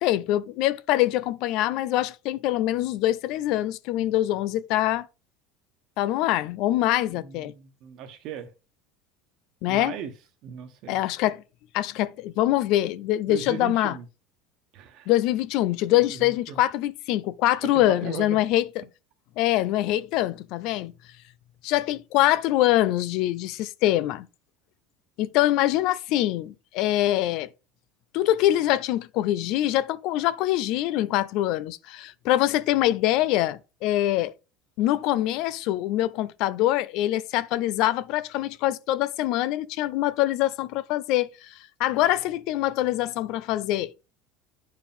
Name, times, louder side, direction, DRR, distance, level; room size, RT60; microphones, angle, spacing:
voice 1, 0.0-5.1 6.0-7.5 9.6-10.0 10.9-11.4 11.7-14.0 15.1-18.7 19.4-20.9 21.6-24.3 25.2-27.5 28.1-34.3 34.8-43.9, left 14 dB, 65° left, 0.5 m, -24 dB
voice 2, 7.1-8.5 9.7-10.1 10.4-11.0 13.3-14.0 14.7-15.1 16.1-16.6 17.6-18.4, right 7 dB, 60° right, 1.3 m, -37 dB
9.2 x 4.7 x 3.6 m
supercardioid pair, 115°, 0 cm